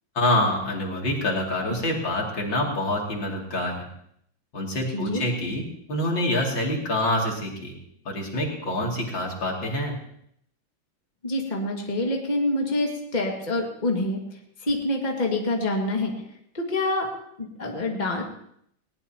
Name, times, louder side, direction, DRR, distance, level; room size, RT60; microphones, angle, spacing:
voice 1, 0.2-3.9 4.5-5.6 5.9-7.7 8.1-9.9, left 1 dB, 75° left, -1 dB, 3.5 m, -26 dB
voice 2, 4.9-5.2 11.2-16.1 16.5-17.1 17.4-18.2, left 2 dB, 25° left, 0 dB, 2.0 m, -26 dB
20.5 x 18.0 x 2.9 m, 0.69 s
omnidirectional pair, 2.1 m